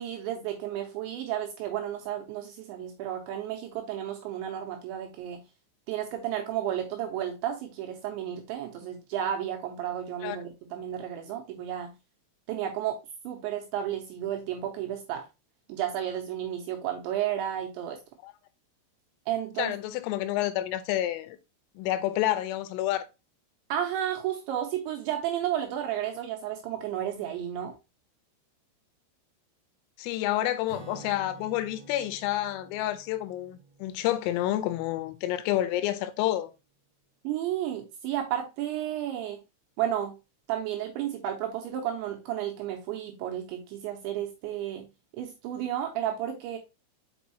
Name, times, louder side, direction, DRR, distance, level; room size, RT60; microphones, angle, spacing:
voice 1, 0.0-5.4 5.9-11.9 12.5-13.0 13.2-15.3 15.7-18.0 19.3-19.7 23.7-27.7 37.2-39.4 39.8-40.1 40.5-44.8 45.1-46.6, right 11 dB, 85° right, 2.7 m, -32 dB
voice 2, 19.6-21.4 21.8-23.1 30.0-36.5, left 14 dB, 90° left, 3.3 m, -29 dB
Acoustic guitar / Strum, 30.7-35.5, right 3 dB, 55° right, 1.8 m, -50 dB
6.1 x 5.4 x 2.8 m
omnidirectional pair, 5.9 m